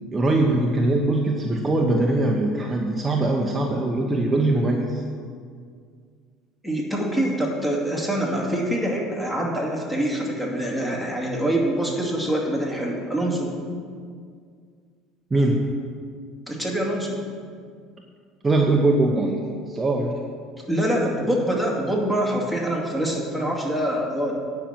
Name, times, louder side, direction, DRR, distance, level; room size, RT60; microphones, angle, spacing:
voice 1, 0.1-5.0 15.3-15.6 18.4-19.4 19.7-20.2, right 2 dB, 20° right, 0 dB, 1.0 m, -21 dB
voice 2, 6.6-13.5 16.5-17.2 20.7-24.3, right 1 dB, 10° left, -2 dB, 2.4 m, -25 dB
9.9 x 5.8 x 7.5 m, 2.1 s
supercardioid pair, 100°, 0 cm